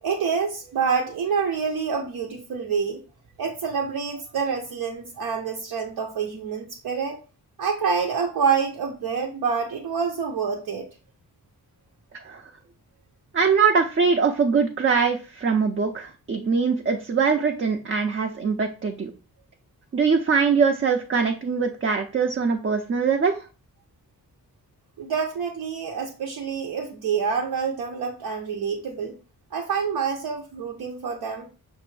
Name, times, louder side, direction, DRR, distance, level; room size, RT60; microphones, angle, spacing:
voice 1, 0.0-3.0 3.4-7.2 7.6-10.9 25.0-29.1 29.5-31.5, right 6 dB, 80° right, 1 dB, 0.7 m, -27 dB
voice 2, 13.3-19.1 19.9-23.5, right 5 dB, 35° right, 4 dB, 0.5 m, -22 dB
5.9 x 2.6 x 3.2 m, 0.35 s
wide cardioid pair, 95°, 37 cm